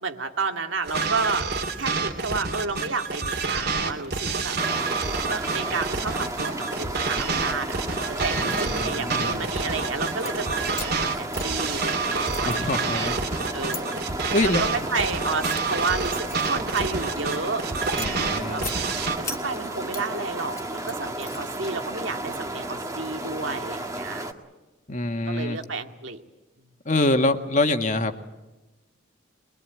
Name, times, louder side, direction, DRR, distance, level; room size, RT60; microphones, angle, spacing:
voice 1, 0.0-1.5 1.8-4.6 5.3-13.1 13.5-14.0 14.6-17.6 18.3-18.6 19.2-24.2 25.3-26.2, right 4 dB, 75° right, 5 dB, 2.1 m, -31 dB
sound 1, 0.8-19.2, right 4 dB, 55° right, 2.7 m, -28 dB
sound 2, 4.6-24.3, right 1 dB, 15° right, 1.8 m, -33 dB
voice 2, 8.3-9.5 12.4-13.2 14.3-14.6 17.9-18.7 24.9-25.6 26.8-28.2, left 2 dB, 40° left, 6 dB, 1.7 m, -25 dB
sound 3, 10.1-10.3 10.7-11.9 12.2-13.8 14.5-14.8 15.3-17.4 17.8-18.8 19.2-20.1 20.4-21.6, left 3 dB, 15° left, 2.0 m, -38 dB
24.0 x 22.5 x 9.3 m, 1.1 s
head